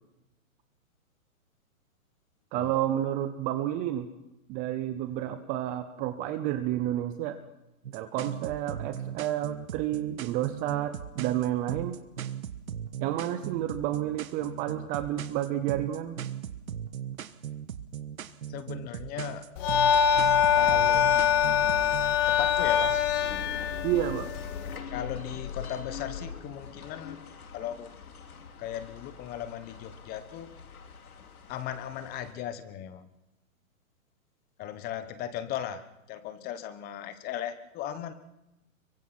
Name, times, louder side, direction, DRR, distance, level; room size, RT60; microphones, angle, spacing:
voice 1, 2.5-4.1 4.5-7.4 7.9-12.0 13.0-16.2 23.8-24.3, right 12 dB, 20° right, 10 dB, 0.7 m, -30 dB
sound 1, 7.8-22.2, right 9 dB, 75° right, 1.4 m, -38 dB
voice 2, 18.5-19.4 20.6-22.0 22.3-22.9 24.9-27.2 27.5-27.9 28.6-30.5 31.5-33.1 34.6-35.8 36.1-38.1, left 10 dB, 20° left, 12 dB, 1.2 m, -37 dB
sound 2, 19.6-24.8, left 8 dB, 40° left, 2.3 m, -24 dB
sound 3, 23.2-32.3, left 6 dB, 80° left, 2.9 m, -43 dB
26.0 x 23.5 x 4.3 m, 0.94 s
hypercardioid pair, 140°, 43 cm